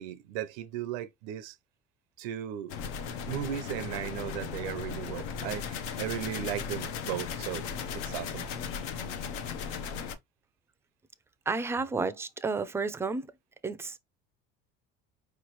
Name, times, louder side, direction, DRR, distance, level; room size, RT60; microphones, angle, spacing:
voice 1, 0.0-1.6 2.2-2.7 3.3-7.6 7.9-8.5, right 11 dB, 90° right, 0.6 m, -36 dB
sound 1, 2.7-10.2, left 7 dB, 85° left, 0.6 m, -36 dB
voice 2, 11.5-13.3 13.6-14.0, right 4 dB, 10° right, 0.4 m, -31 dB
4.8 x 3.0 x 3.0 m
cardioid pair, 135°, 21 cm